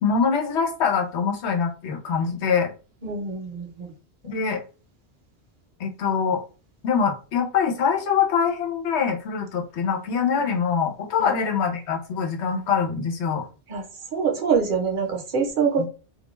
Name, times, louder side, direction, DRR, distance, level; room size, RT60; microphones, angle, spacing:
voice 1, 0.0-2.7 4.2-4.6 5.8-6.4 6.8-13.5 15.8-15.9, left 6 dB, 85° left, 1 dB, 1.0 m, -24 dB
voice 2, 3.0-3.9 11.2-11.3 13.7-13.8 14.1-15.9, right 6 dB, 55° right, 1 dB, 0.8 m, -25 dB
2.4 x 2.2 x 3.0 m, 0.35 s
omnidirectional pair, 1.1 m